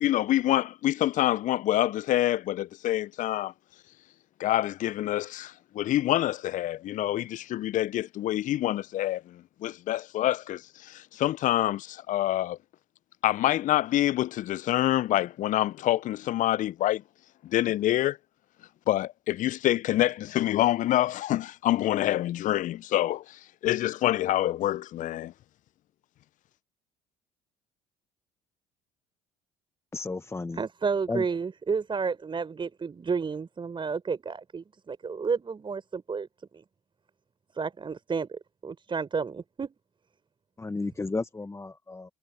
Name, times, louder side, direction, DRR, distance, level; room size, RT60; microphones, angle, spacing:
voice 1, 0.0-3.5 4.4-12.6 13.2-17.0 17.4-18.2 18.9-25.3, left 14 dB, 50° left, 0.8 m, -26 dB
voice 2, 29.9-30.6 31.1-31.2 40.6-42.1, left 3 dB, 15° left, 1.4 m, -33 dB
voice 3, 30.6-36.3 37.6-39.7, right 5 dB, 30° right, 4.8 m, -31 dB
figure-of-eight pair, 60°, 17 cm